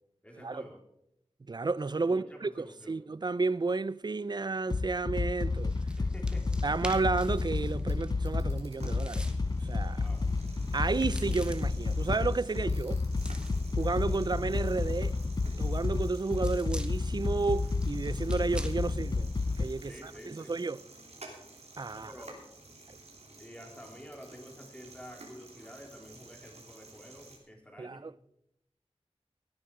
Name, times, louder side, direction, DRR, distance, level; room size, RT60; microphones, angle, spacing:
voice 1, 0.2-0.8 2.0-3.0 6.0-6.5 9.9-10.2 19.8-20.5 21.9-22.4 23.4-28.0, equal, 10° left, 3.8 m, -49 dB
voice 2, 1.5-5.7 6.6-9.3 9.6-10.0 10.7-13.0 13.8-15.2 15.6-20.8 21.8-22.1 27.8-28.1, right 3 dB, 40° right, 0.5 m, -32 dB
sound 1, 4.7-19.6, left 3 dB, 40° left, 0.5 m, -31 dB
sound 2, 5.4-20.1, equal, 10° right, 1.3 m, -50 dB
sound 3, 7.6-27.4, right 2 dB, 75° right, 3.1 m, -53 dB
17.0 x 9.8 x 4.9 m
wide cardioid pair, 60°, 11 cm